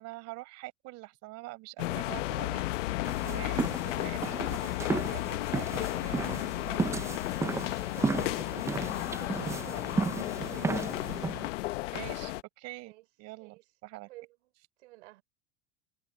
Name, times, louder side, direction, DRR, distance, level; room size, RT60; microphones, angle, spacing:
voice 1, 0.0-6.9 11.9-12.9 13.2-13.6 13.8-14.1, right 21 dB, 45° right, 5.6 m, -45 dB
sound 1, 1.8-12.4, left 18 dB, 85° left, 1.1 m, -33 dB
sound 2, 3.0-11.5, right 4 dB, 10° right, 0.6 m, -34 dB
voice 2, 5.9-6.5 7.4-10.8 12.8-13.1 13.4-13.6 14.0-14.5 14.8-15.2, right 19 dB, 75° right, 5.1 m, -52 dB
supercardioid pair, 155°, 36 cm